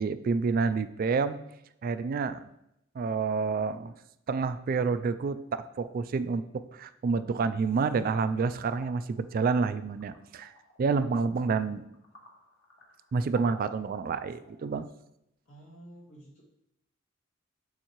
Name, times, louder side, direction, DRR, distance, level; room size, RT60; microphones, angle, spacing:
voice 1, 0.0-1.4 1.8-2.5 3.0-3.9 4.3-6.4 6.7-10.5 10.8-11.9 13.1-14.9, right 4 dB, 45° right, 12 dB, 0.3 m, -28 dB
sound 1, 8.6-14.8, left 2 dB, 65° left, 1.6 m, -55 dB
voice 2, 15.5-16.4, right 1 dB, 80° left, -5 dB, 2.4 m, -50 dB
7.2 x 6.5 x 3.0 m, 0.82 s
head